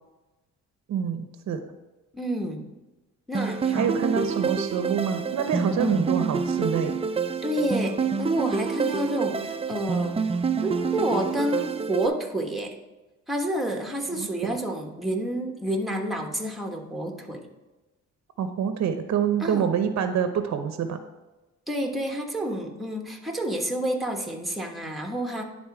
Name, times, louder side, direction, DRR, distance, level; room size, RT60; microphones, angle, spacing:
voice 1, 0.9-1.6 3.7-7.0 14.2-14.6 18.4-21.0, right 7 dB, 65° right, 8 dB, 0.8 m, -26 dB
voice 2, 2.1-2.7 3.3-4.0 7.4-10.2 10.6-12.8 13.3-17.5 19.4-19.7 21.7-25.4, right 1 dB, ahead, 2 dB, 1.3 m, -29 dB
sound 1, 3.3-12.1, right 5 dB, 20° right, 0.5 m, -27 dB
10.5 x 4.0 x 4.8 m, 1.1 s
cardioid pair, 90°, 30 cm